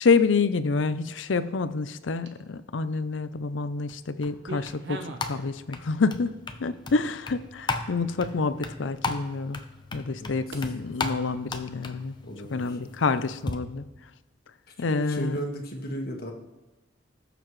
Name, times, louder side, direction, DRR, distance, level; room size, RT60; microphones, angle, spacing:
voice 1, 0.0-9.6 9.9-12.2 12.5-13.8 14.8-15.4, left 4 dB, 85° left, 13 dB, 0.6 m, -27 dB
sound 1, 2.2-2.7 3.2-3.9 4.1-5.4 5.8-6.3 6.9-7.0 7.5-7.6 8.3-8.4 10.5-10.7, right 2 dB, 70° right, 0.9 m, -42 dB
sound 2, 3.9-13.5, left 3 dB, 25° left, 0.7 m, -37 dB
voice 2, 12.2-12.8 14.8-16.3, equal, 55° left, 2 dB, 1.6 m, -35 dB
20.5 x 6.9 x 3.2 m, 1.1 s
head